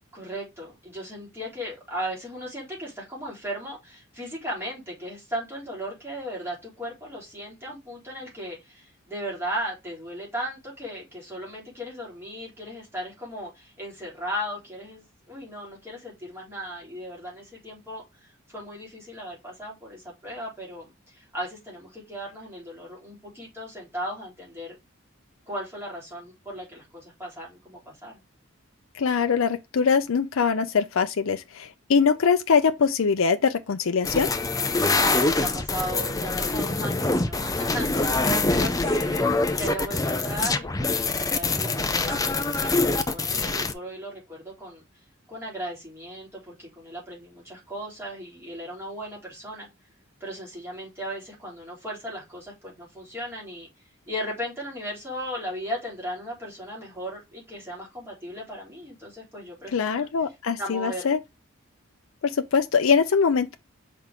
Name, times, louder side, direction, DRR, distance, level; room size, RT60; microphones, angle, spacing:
voice 1, 0.1-24.8 25.5-28.2 34.9-44.8 45.3-49.7 50.2-53.7 54.1-60.1 60.6-61.1, equal, 10° right, 4.0 m, -36 dB
voice 2, 28.9-34.3 59.7-61.2 62.2-63.6, left 5 dB, 75° left, 0.5 m, -22 dB
sound 1, 34.0-43.7, left 3 dB, 15° left, 0.5 m, -24 dB
5.8 x 4.6 x 3.7 m
head